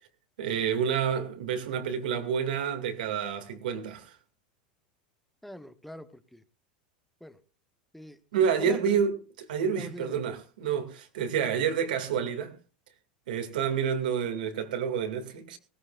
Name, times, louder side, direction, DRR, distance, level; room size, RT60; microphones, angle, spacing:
voice 1, 0.4-4.2 8.3-12.6 13.3-15.6, right 7 dB, 85° right, 2.3 m, -29 dB
voice 2, 5.4-6.4 7.2-7.4 7.9-9.0 9.8-10.1, left 1 dB, ahead, 0.9 m, -44 dB
19.5 x 16.5 x 2.5 m
supercardioid pair, 120°, 5 cm